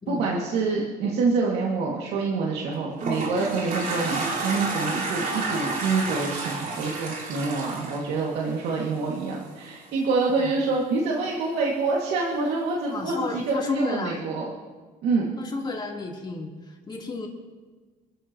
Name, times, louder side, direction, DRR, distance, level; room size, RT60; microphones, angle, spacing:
voice 1, 0.1-14.5 15.0-15.2, right 4 dB, 80° right, -3 dB, 2.5 m, -26 dB
Toilet flush, 2.6-9.0, right 3 dB, 55° right, 3.8 m, -30 dB
voice 2, 12.9-14.3 15.4-17.3, left 3 dB, 25° left, -2 dB, 3.6 m, -32 dB
27.0 x 14.5 x 3.1 m, 1.4 s
cardioid pair, 110°, 17 cm